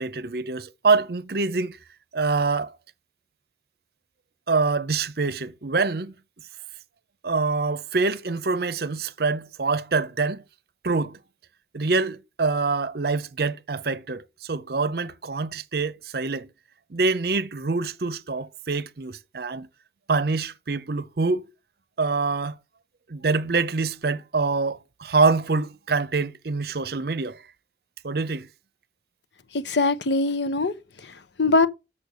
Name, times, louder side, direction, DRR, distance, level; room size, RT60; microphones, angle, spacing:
voice 1, 0.0-1.8 2.1-2.7 4.5-6.1 7.2-10.4 10.8-11.2 11.7-16.5 16.9-19.7 20.1-21.5 22.0-22.6 23.1-27.4 28.0-28.5, right 4 dB, 60° right, 0.7 m, -25 dB
voice 2, 29.5-30.7 31.0-31.7, left 3 dB, 75° left, 0.9 m, -22 dB
6.8 x 6.6 x 6.9 m
head